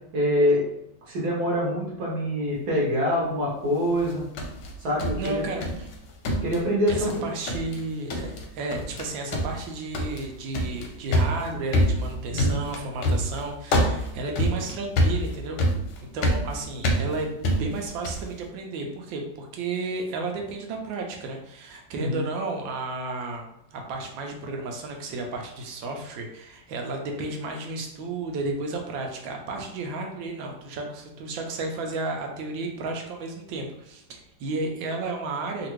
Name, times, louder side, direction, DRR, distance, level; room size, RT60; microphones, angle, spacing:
voice 1, 0.1-0.7 1.1-4.2 4.8-5.4 6.4-7.3 12.3-12.6 21.9-22.2, equal, 60° right, -4 dB, 1.2 m, -25 dB
sound 1, 4.0-5.9 6.2-7.2 7.5-7.8 8.1-8.4 8.7-9.0 9.3-18.3, equal, 70° left, 1.1 m, -26 dB
voice 2, 5.2-5.9 7.0-15.6 16.1-23.4 23.7-35.7, right 3 dB, 75° right, 2 dB, 1.3 m, -33 dB
3.3 x 2.5 x 3.1 m, 0.81 s
omnidirectional pair, 2.3 m